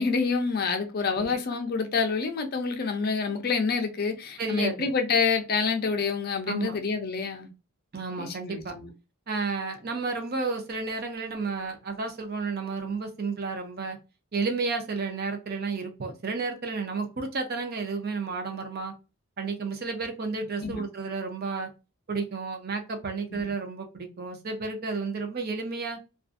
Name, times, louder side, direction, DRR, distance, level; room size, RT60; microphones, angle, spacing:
voice 1, 0.0-7.5 8.2-8.9 20.6-20.8 23.3-23.4, left 5 dB, 45° left, 0.4 m, -27 dB
voice 2, 4.4-4.9 6.5-6.8 7.9-8.8 9.3-14.0 14.3-18.9 19.4-21.7 22.1-26.0, right 4 dB, 45° right, 0.5 m, -32 dB
2.5 x 2.3 x 2.4 m
head